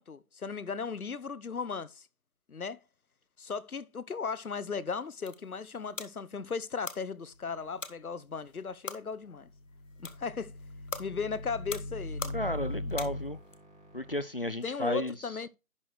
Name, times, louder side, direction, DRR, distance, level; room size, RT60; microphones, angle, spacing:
voice 1, 0.0-2.1 2.5-2.8 3.4-9.5 10.0-10.5 11.0-12.4 14.6-15.5, left 5 dB, 85° left, 0.9 m, -36 dB
sound 1, 4.9-13.6, left 4 dB, 60° left, 1.4 m, -45 dB
sound 2, 9.4-14.2, left 1 dB, 10° right, 3.7 m, -40 dB
voice 2, 12.3-13.4 13.9-15.2, left 1 dB, 40° left, 0.5 m, -33 dB
11.0 x 6.3 x 3.2 m
figure-of-eight pair, 165°, 42 cm